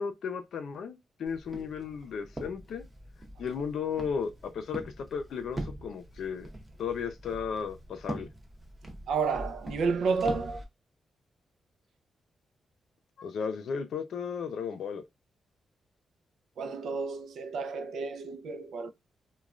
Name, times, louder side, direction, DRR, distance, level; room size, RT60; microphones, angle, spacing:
voice 1, 0.0-2.8 3.4-6.5 6.8-8.3 13.2-15.0, left 6 dB, 75° left, 0.5 m, -35 dB
Walk footsteps, 1.3-10.6, right 1 dB, 20° right, 0.6 m, -43 dB
voice 2, 9.1-10.6 16.6-18.9, right 4 dB, 90° right, 0.4 m, -31 dB
3.1 x 2.2 x 2.4 m
wide cardioid pair, 140°, 0 cm